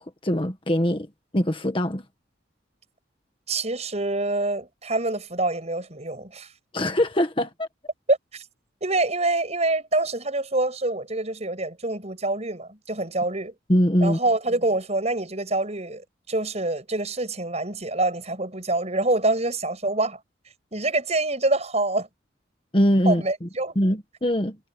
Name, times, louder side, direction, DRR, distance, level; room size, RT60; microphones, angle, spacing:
voice 1, 0.2-1.1 1.3-2.0 6.7-7.7 13.7-14.2 22.7-23.5 23.7-24.6, equal, 30° left, 1.5 m, -22 dB
voice 2, 3.5-6.5 8.1-8.5 8.8-13.5 14.0-20.2 20.7-22.1 23.1-23.8, right 2 dB, 35° right, 6.9 m, -26 dB
head